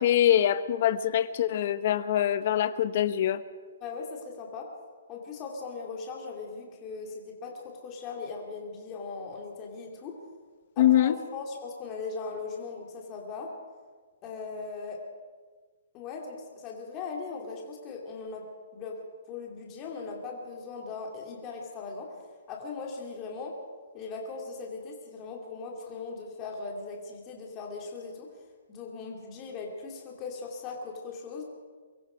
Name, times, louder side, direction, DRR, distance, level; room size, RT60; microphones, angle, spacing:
voice 1, 0.0-3.4 10.8-11.2, left 11 dB, 40° left, 13 dB, 1.0 m, -24 dB
voice 2, 3.8-4.7 5.1-10.2 10.8-13.5 14.2-15.0 15.9-18.5 18.7-19.0 19.3-22.2 22.5-23.6 23.9-28.3 28.7-31.4, left 4 dB, 20° left, 0 dB, 2.6 m, -39 dB
23.5 x 22.5 x 5.1 m, 1.5 s
hypercardioid pair, 170°, 0 cm